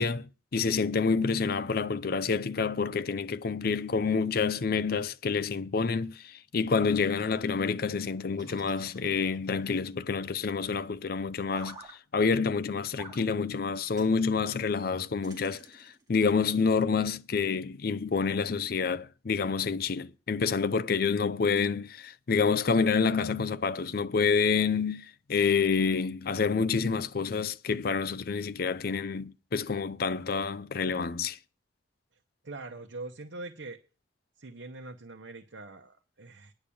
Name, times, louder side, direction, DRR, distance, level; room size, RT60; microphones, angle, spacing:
voice 1, 0.0-11.8 12.1-31.4, left 5 dB, 55° left, 0.5 m, -28 dB
sound 1, 8.4-9.6 11.5-11.9 13.0-13.2 13.9-14.2 15.2-16.1, right 2 dB, 20° right, 2.7 m, -48 dB
voice 2, 32.4-33.8 34.4-36.5, right 2 dB, 90° right, 0.9 m, -43 dB
10.0 x 5.8 x 8.5 m
head